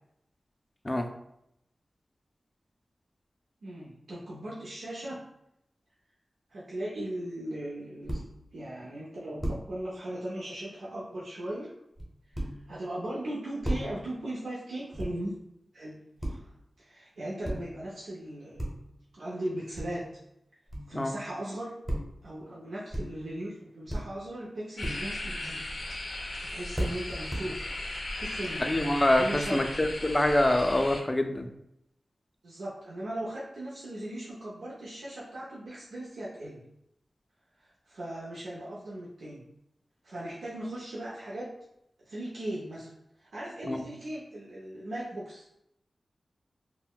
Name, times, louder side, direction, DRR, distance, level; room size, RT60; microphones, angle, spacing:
voice 1, 3.6-5.2 6.5-8.2 8.5-11.7 12.3-12.4 12.7-15.4 15.7-16.5 16.8-18.7 19.1-20.1 20.9-21.7 22.2-25.7 26.4-28.6 29.1-29.6 32.4-36.6 37.6-39.4 40.0-41.5 42.1-42.9 43.2-45.4, right 1 dB, 85° right, -6 dB, 0.5 m, -38 dB
sound 1, 8.1-8.4 9.4-9.8 12.0-12.9 13.6-14.2 14.9-15.4 16.2-16.6 17.4-17.9 18.5-19.0 19.7-20.2 20.7-21.1 21.8-22.3 22.9-23.4 23.9-24.3 24.8-25.3 25.8-26.0 26.7-27.4, right 1 dB, 20° right, 0.8 m, -35 dB
sound 2, 24.8-31.0, left 1 dB, 80° left, 0.6 m, -37 dB
voice 2, 28.6-31.5 43.7-43.9, left 1 dB, 20° left, 6 dB, 0.3 m, -25 dB
3.7 x 2.0 x 2.2 m, 0.80 s
wide cardioid pair, 75°, 0 cm